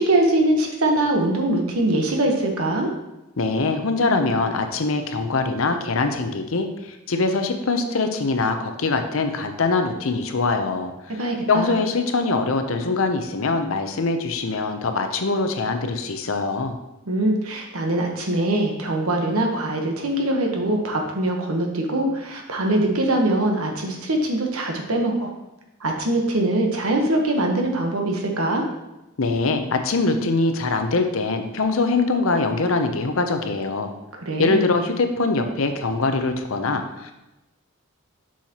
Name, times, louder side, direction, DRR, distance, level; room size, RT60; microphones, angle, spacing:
voice 1, 0.0-2.9 11.2-11.7 17.1-25.3 25.8-28.6 34.1-34.6, right 1 dB, 85° right, 2 dB, 1.2 m, -22 dB
voice 2, 3.4-10.9 11.5-16.8 29.2-33.9 34.4-37.1, left 3 dB, 65° left, 6 dB, 0.7 m, -23 dB
7.3 x 5.7 x 2.9 m, 0.97 s
head